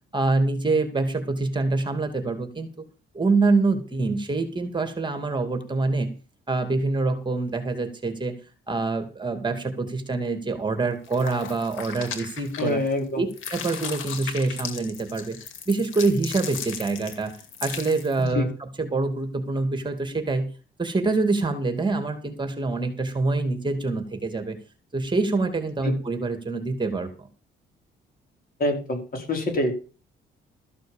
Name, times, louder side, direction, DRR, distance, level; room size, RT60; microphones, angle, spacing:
voice 1, 0.1-2.7 3.1-6.1 6.5-8.3 8.7-12.8 13.2-15.4 15.7-20.5 20.8-24.6 24.9-27.3, right 3 dB, 25° right, 7 dB, 2.6 m, -25 dB
sound 1, 11.0-13.0 13.3-18.2, left 7 dB, 85° left, 2.4 m, -37 dB
voice 2, 12.6-13.2 18.3-18.5 25.8-25.9 28.6-29.8, left 1 dB, 45° left, 3 dB, 4.8 m, -26 dB
14.0 x 6.3 x 7.3 m, 0.35 s
cardioid pair, 90°, 20 cm